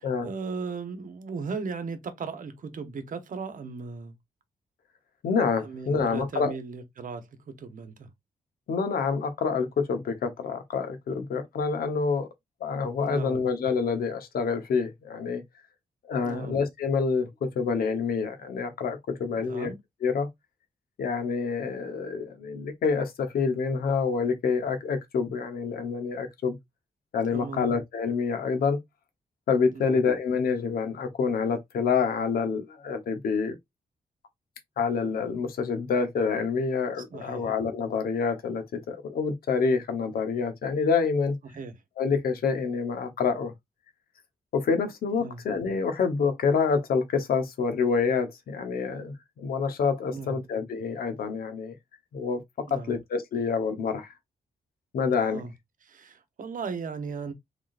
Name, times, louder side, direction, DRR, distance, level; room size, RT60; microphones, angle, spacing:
voice 1, 0.0-4.2 5.6-8.1 13.0-13.4 16.2-16.6 19.3-19.8 27.3-27.7 29.7-30.1 37.1-37.5 41.4-41.7 45.1-45.4 50.1-50.4 52.7-53.0 55.3-55.5 55.8-57.3, right 4 dB, 65° right, 1.0 m, -37 dB
voice 2, 5.2-6.5 8.7-12.3 12.6-15.4 16.0-19.7 20.0-20.3 21.0-26.6 27.1-28.8 29.5-33.6 34.8-41.4 42.0-43.5 44.5-51.7 52.1-54.1 54.9-55.4, left 5 dB, 85° left, 1.0 m, -27 dB
3.8 x 3.6 x 2.5 m
cardioid pair, 90°, 15 cm